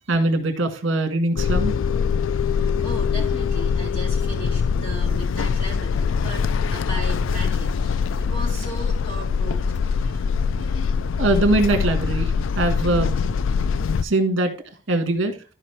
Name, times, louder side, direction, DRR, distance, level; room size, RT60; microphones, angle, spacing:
voice 1, 0.1-1.7 11.2-13.1 14.0-15.3, right 2 dB, 70° right, 7 dB, 1.8 m, -22 dB
sound 1, 1.4-14.0, left 5 dB, 75° left, 0.4 m, -23 dB
voice 2, 2.3-9.9, right 2 dB, 25° left, -5 dB, 3.8 m, -37 dB
13.0 x 5.1 x 3.4 m, 0.36 s
head